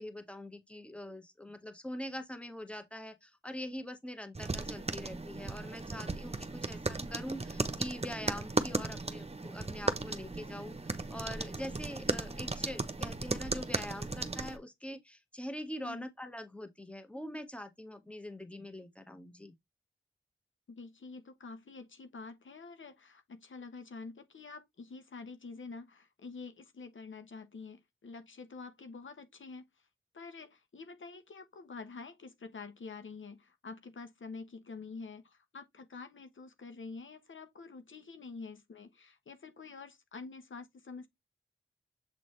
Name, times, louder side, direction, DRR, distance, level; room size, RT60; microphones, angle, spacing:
voice 1, 0.0-10.8 11.1-19.5, left 1 dB, 5° left, 1.4 m, -43 dB
sound 1, 4.3-14.6, right 3 dB, 30° right, 1.0 m, -36 dB
voice 2, 20.7-29.6 30.1-41.1, left 4 dB, 75° left, 1.0 m, -47 dB
7.7 x 3.8 x 3.2 m
cardioid pair, 45°, 20 cm